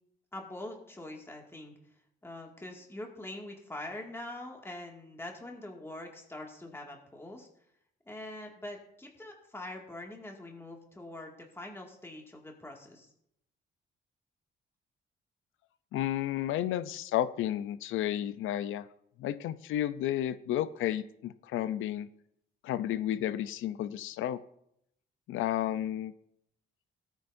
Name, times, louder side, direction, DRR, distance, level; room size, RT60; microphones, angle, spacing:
voice 1, 0.3-1.7 2.2-7.5 8.1-13.1, left 1 dB, 10° left, 0 dB, 2.2 m, -44 dB
voice 2, 15.9-18.9 19.2-22.1 22.6-24.4 25.3-26.1, left 12 dB, 85° left, 14 dB, 0.6 m, -32 dB
18.0 x 9.1 x 2.7 m, 0.75 s
cardioid pair, 90°, 20 cm